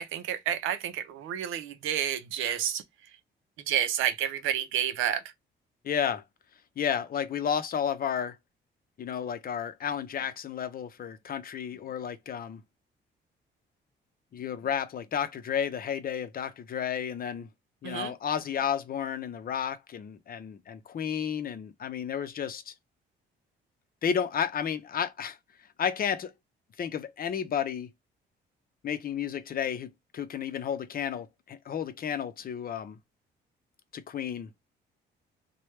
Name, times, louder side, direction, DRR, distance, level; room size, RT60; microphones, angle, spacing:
voice 1, 0.0-2.8 3.7-5.2 17.8-18.1, right 10 dB, 85° right, 0.5 m, -30 dB
voice 2, 5.8-6.2 6.8-8.4 9.0-12.6 14.3-17.5 17.8-22.7 24.0-25.4 25.8-26.3 26.8-27.9 28.8-33.0 33.9-34.5, left 8 dB, 50° left, 0.6 m, -32 dB
3.1 x 2.2 x 3.2 m
cardioid pair, 90°, 20 cm